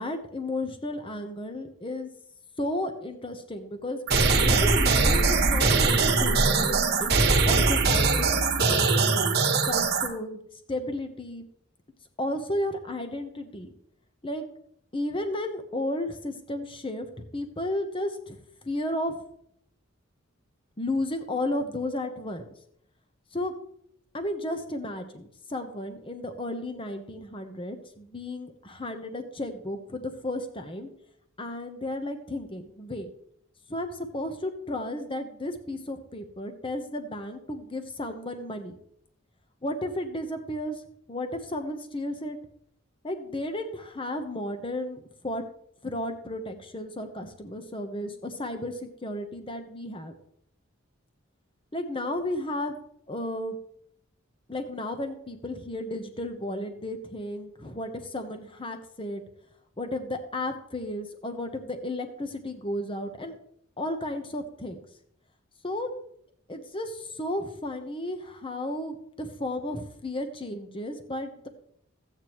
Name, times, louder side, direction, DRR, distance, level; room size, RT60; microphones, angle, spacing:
voice 1, 0.0-2.1 2.6-4.0 4.5-7.1 7.5-9.3 9.7-10.4 10.7-11.4 12.2-13.7 14.2-14.4 14.9-17.1 17.3-18.4 18.6-19.2 20.8-22.4 23.3-23.5 24.1-30.9 31.4-33.1 33.7-38.8 39.6-40.8 41.1-42.4 43.0-45.4 45.8-50.1 51.7-52.8 53.1-53.6 54.5-59.2 59.8-63.4 63.8-64.8 65.6-65.9 66.5-71.5, left 1 dB, 25° left, 7 dB, 1.0 m, -33 dB
sound 1, 4.1-10.1, right 4 dB, 50° right, 1.5 m, -22 dB
14.0 x 8.7 x 3.1 m, 0.68 s
head